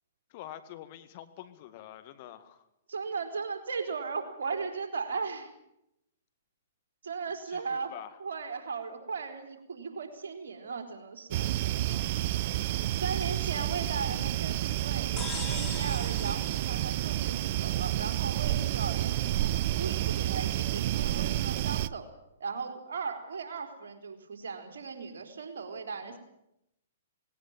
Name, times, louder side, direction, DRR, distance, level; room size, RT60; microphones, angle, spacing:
voice 1, 0.3-2.7 7.5-8.2 11.9-12.3 26.0-26.2, left 12 dB, 45° left, 11 dB, 1.9 m, -47 dB
voice 2, 2.9-5.5 7.0-7.9 8.2-11.5 13.0-22.1 22.4-26.2, right 5 dB, 70° right, 5 dB, 3.9 m, -37 dB
sound 1, 11.3-21.9, right 14 dB, 50° right, 0.7 m, -30 dB
sound 2, 15.2-17.8, left 7 dB, 25° left, 2.9 m, -42 dB
18.5 x 17.5 x 8.9 m, 0.83 s
hypercardioid pair, 120°, 0 cm